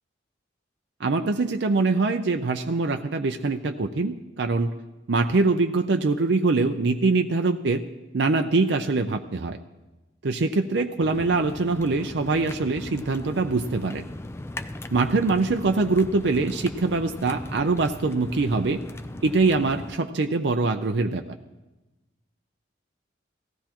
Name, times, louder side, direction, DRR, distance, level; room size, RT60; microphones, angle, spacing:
voice 1, 1.0-4.7 5.1-7.8 8.1-9.6 10.2-14.0 14.9-18.8 19.2-21.4, right 3 dB, 70° right, 5 dB, 0.5 m, -23 dB
sound 1, 11.0-20.0, left 1 dB, 15° left, 0.3 m, -38 dB
17.5 x 15.0 x 3.0 m, 1.1 s
head